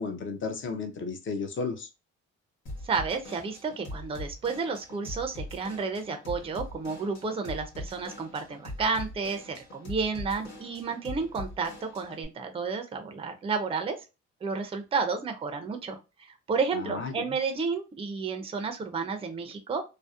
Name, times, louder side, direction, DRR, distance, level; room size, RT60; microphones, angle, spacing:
voice 1, 0.0-1.9 16.7-17.3, left 4 dB, 40° left, 0.6 m, -33 dB
Drum kit / Drum, 2.7-12.3, left 1 dB, 85° left, 1.1 m, -42 dB
voice 2, 2.8-14.0 14.4-19.8, right 4 dB, 20° right, 0.4 m, -31 dB
2.6 x 2.0 x 2.3 m
cardioid pair, 90°, 30 cm